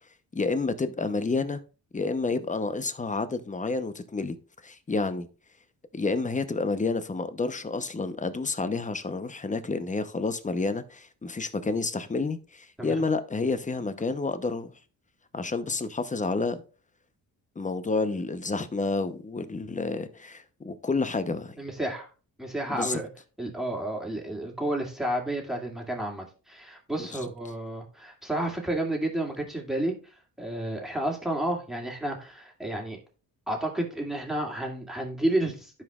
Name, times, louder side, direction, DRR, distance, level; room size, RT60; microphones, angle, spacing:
voice 1, 0.3-1.6 1.9-4.4 4.6-5.3 5.9-14.7 15.3-16.6 17.6-21.6 22.7-23.0 27.0-27.1, left 3 dB, 20° left, 0.8 m, -29 dB
voice 2, 21.6-22.1 22.4-23.1 23.4-29.9 30.4-33.0 33.5-35.8, right 1 dB, ahead, 2.5 m, -31 dB
12.0 x 5.1 x 2.4 m
cardioid pair, 65°, 37 cm